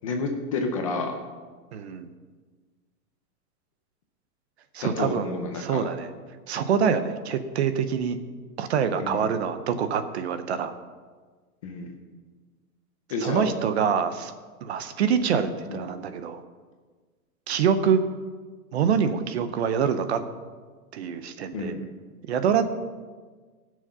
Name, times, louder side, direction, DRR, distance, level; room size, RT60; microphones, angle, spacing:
voice 1, 0.0-1.1 4.8-5.8 9.0-9.2 11.6-11.9 13.1-13.5 15.7-15.9 21.5-21.9, left 3 dB, 25° left, 3 dB, 0.6 m, -30 dB
voice 2, 1.7-2.1 4.7-6.1 6.5-8.2 8.6-10.7 13.2-14.3 14.6-16.4 17.5-18.0 18.7-20.2 20.9-21.8 22.3-22.6, right 7 dB, 45° right, 10 dB, 0.7 m, -25 dB
15.0 x 6.4 x 5.5 m, 1.4 s
supercardioid pair, 170°, 46 cm